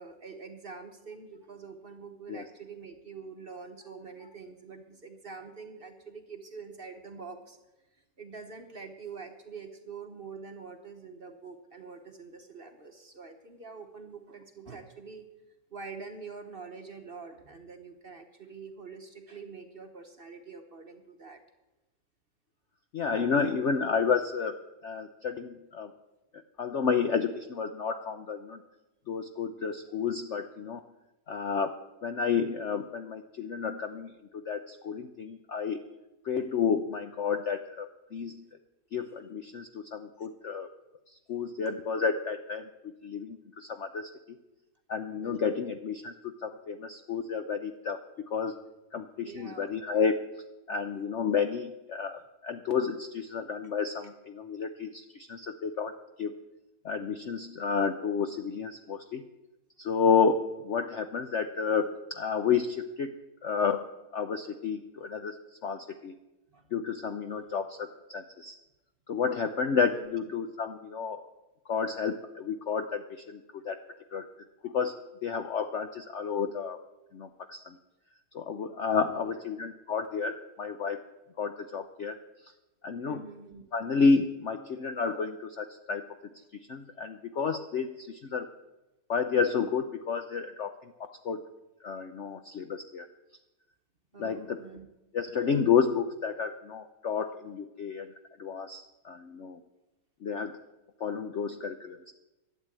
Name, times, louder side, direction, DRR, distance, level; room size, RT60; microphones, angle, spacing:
voice 1, 0.0-7.6 8.2-15.3 15.7-21.4 23.4-23.5 36.3-36.4 45.2-45.7 49.2-49.7 66.5-66.7 69.9-70.1 79.0-79.4 83.0-83.6 94.1-94.9 95.3-95.4, right 5 dB, 40° right, 6 dB, 1.0 m, -45 dB
voice 2, 22.9-24.6 24.8-25.9 26.6-28.6 29.1-30.8 31.3-31.7 32.0-35.8 36.2-38.4 38.9-40.7 41.3-42.7 43.0-44.4 44.9-48.0 48.3-48.6 48.9-50.2 50.7-56.3 56.8-59.2 59.8-63.1 63.4-63.9 64.1-65.4 65.6-66.1 66.7-68.6 69.1-71.2 71.7-73.8 74.1-74.3 74.6-76.8 77.1-77.7 78.3-81.0 81.4-82.2 82.8-83.3 83.7-86.0 86.7-88.5 89.1-91.4 91.8-93.1 94.2-94.6 95.1-98.1 98.4-99.6 100.2-100.6 101.0-102.1, left 6 dB, 60° left, 8 dB, 0.7 m, -31 dB
12.0 x 8.5 x 8.8 m, 1.0 s
omnidirectional pair, 1.9 m